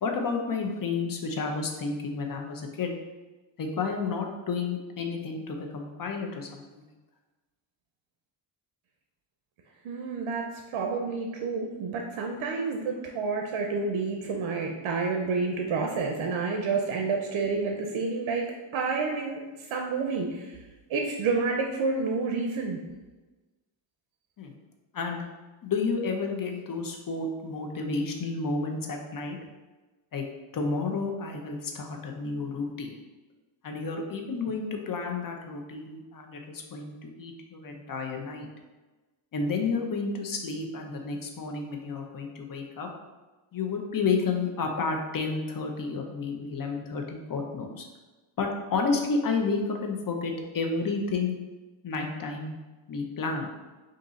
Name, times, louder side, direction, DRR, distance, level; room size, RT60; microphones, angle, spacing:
voice 1, 0.0-2.9 3.6-6.8 24.4-24.5 24.9-25.2 25.6-29.4 30.1-30.2 30.5-33.0 33.6-38.5 39.3-42.9 43.5-47.9 48.4-51.4 51.8-52.5 52.9-53.5, left 4 dB, 45° left, 2 dB, 0.7 m, -31 dB
voice 2, 9.8-20.6 20.9-22.8, right 4 dB, 80° right, 2 dB, 0.6 m, -29 dB
3.7 x 2.7 x 3.9 m, 1.2 s
cardioid pair, 100°, 48 cm